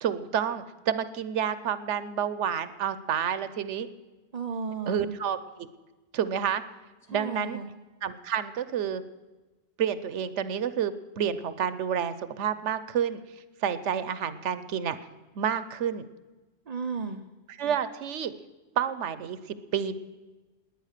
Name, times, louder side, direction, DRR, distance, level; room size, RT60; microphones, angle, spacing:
voice 1, 0.0-3.9 4.9-5.7 6.1-6.6 7.1-7.6 8.0-9.0 9.8-13.2 13.6-15.0 15.4-16.1 17.6-18.3 18.8-20.0, right 8 dB, 85° right, 14 dB, 1.1 m, -29 dB
voice 2, 4.3-5.2 7.1-7.7 16.7-17.2, right 5 dB, 40° right, 7 dB, 0.7 m, -34 dB
20.0 x 9.1 x 6.6 m, 1.2 s
omnidirectional pair, 1.2 m